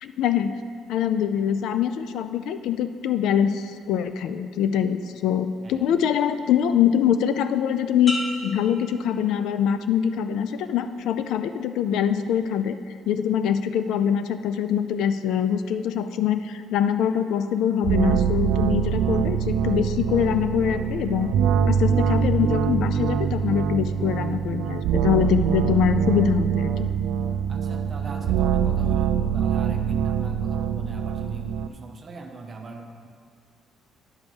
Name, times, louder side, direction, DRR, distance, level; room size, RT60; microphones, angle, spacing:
voice 1, 0.0-0.6 0.9-12.8 13.1-21.3 21.7-26.9, left 8 dB, 75° left, 11 dB, 0.4 m, -24 dB
sound 1, 8.1-9.8 10.3-10.8, equal, 25° left, 0.8 m, -35 dB
sound 2, 17.8-31.7, right 8 dB, 90° right, 0.3 m, -24 dB
voice 2, 27.5-33.1, right 3 dB, 30° right, 4 dB, 0.7 m, -41 dB
10.0 x 5.2 x 4.9 m, 2.1 s
cardioid pair, 160°, 0 cm